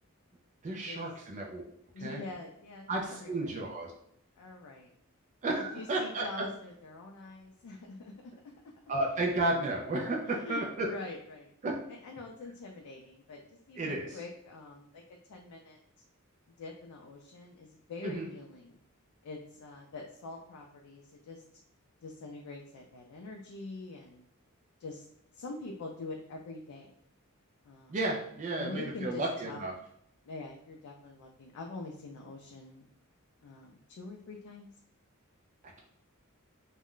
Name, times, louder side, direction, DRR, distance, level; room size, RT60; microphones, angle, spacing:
voice 1, 0.6-1.6 2.0-2.2 2.9-3.9 5.4-6.2 8.9-10.9 11.6-11.8 13.8-14.0 18.0-18.3 27.9-29.7, right 2 dB, 35° right, 0 dB, 0.4 m, -32 dB
voice 2, 1.9-3.6 4.4-4.9 5.5-8.3 10.2-11.5 11.9-15.8 16.6-18.8 19.2-21.4 22.0-24.2 24.8-25.1 25.3-26.9 27.6-28.0 28.6-29.7 30.2-32.9 33.4-34.7, left 2 dB, 90° left, 1 dB, 0.4 m, -45 dB
2.4 x 2.1 x 3.6 m, 0.72 s
head